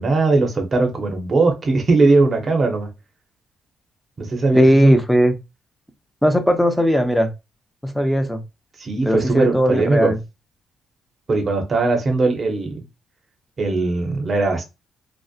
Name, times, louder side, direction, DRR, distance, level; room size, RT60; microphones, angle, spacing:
voice 1, 0.0-2.9 4.2-4.9 8.8-10.1 11.3-12.8 13.6-14.6, right 3 dB, 40° right, 0.7 m, -19 dB
voice 2, 4.5-5.3 6.2-7.3 7.8-8.4 9.1-10.2, equal, 5° left, 0.5 m, -17 dB
2.6 x 2.0 x 2.4 m
cardioid pair, 90°, 0 cm